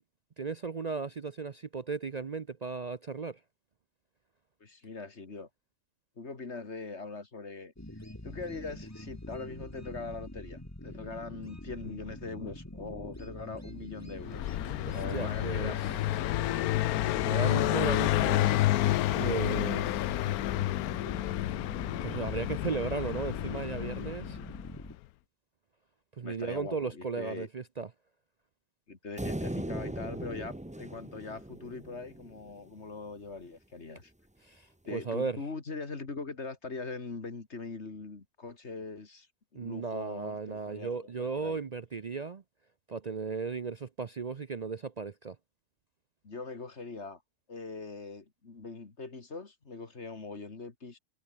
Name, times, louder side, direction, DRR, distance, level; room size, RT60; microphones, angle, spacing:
voice 1, 0.4-3.4 14.9-15.9 17.2-18.5 19.1-20.3 22.0-24.4 26.2-27.9 34.4-35.4 39.5-42.4 42.9-45.4, right 5 dB, 45° right, 0.5 m, -36 dB
voice 2, 4.6-5.5 6.2-7.7 8.2-14.5 14.9-16.3 26.2-27.5 28.9-34.1 34.9-41.6 46.2-47.2 47.5-51.0, left 4 dB, 50° left, 2.6 m, -42 dB
sound 1, 7.8-25.0, left 1 dB, 10° left, 3.4 m, -45 dB
Car passing by, 14.2-24.8, left 15 dB, 85° left, 1.1 m, -30 dB
sound 2, 29.2-32.6, right 1 dB, 5° right, 0.7 m, -38 dB
omnidirectional pair, 1.5 m